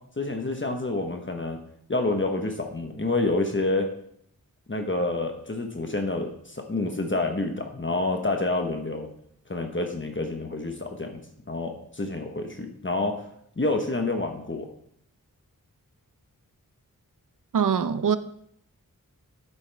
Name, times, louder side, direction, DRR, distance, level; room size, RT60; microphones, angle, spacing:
voice 1, 0.2-1.6 1.9-3.9 4.7-9.1 9.5-11.2 11.5-13.2 13.6-14.7, left 2 dB, 35° left, 4 dB, 1.2 m, -28 dB
voice 2, 17.5-18.2, right 7 dB, 65° right, 13 dB, 0.6 m, -23 dB
10.0 x 8.2 x 3.5 m, 0.69 s
wide cardioid pair, 60°, 34 cm